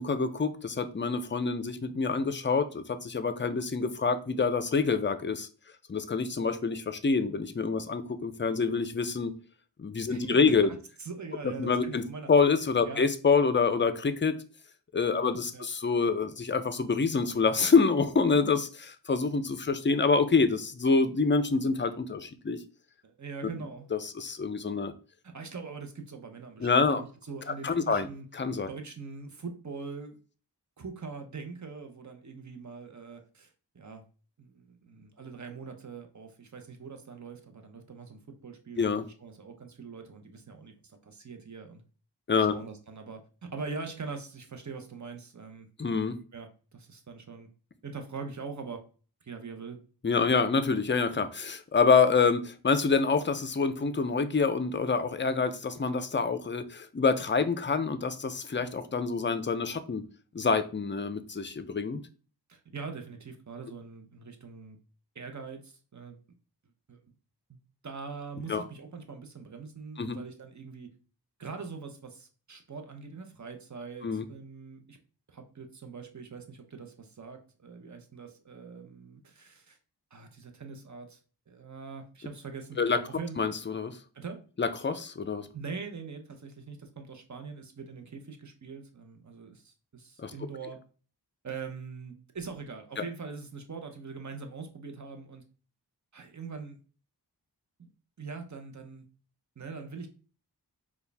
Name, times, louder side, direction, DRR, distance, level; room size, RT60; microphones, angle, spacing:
voice 1, 0.0-5.5 5.9-9.4 9.8-10.7 11.4-12.0 12.3-14.4 14.9-22.6 23.9-24.9 26.6-27.0 27.6-28.1 28.3-28.7 38.8-39.1 42.3-42.5 45.8-46.2 50.0-60.0 60.3-62.0 68.5-68.6 70.0-70.2 74.0-74.2 82.8-83.0 83.4-84.0 84.6-85.5 90.2-90.3 93.0-93.1, left 4 dB, 30° left, 0.5 m, -26 dB
voice 2, 10.1-12.3 12.9-13.1 15.1-15.7 23.0-23.9 25.2-28.3 28.7-30.2 30.8-34.0 34.4-41.8 42.4-45.7 46.3-47.5 47.8-48.8 49.2-49.8 62.5-64.8 65.1-66.2 66.9-67.0 67.5-70.9 71.4-75.0 75.3-79.8 80.1-81.2 81.5-83.4 84.1-84.4 85.5-90.8 91.4-95.4 96.1-96.8 97.8-97.9 98.2-99.1 99.6-100.1, right 4 dB, 45° right, 0.8 m, -43 dB
4.4 x 2.4 x 3.3 m
wide cardioid pair, 40°, 42 cm